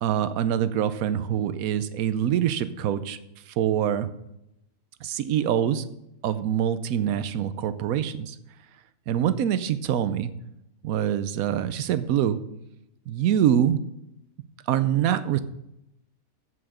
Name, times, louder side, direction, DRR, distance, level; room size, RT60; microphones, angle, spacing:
voice 1, 0.0-3.2 3.5-4.1 5.0-5.9 6.2-8.4 9.1-10.3 10.8-12.4 13.1-13.8 14.7-15.4, right 10 dB, 80° right, 13 dB, 1.1 m, -25 dB
8.0 x 7.8 x 6.3 m, 0.84 s
omnidirectional pair, 1.5 m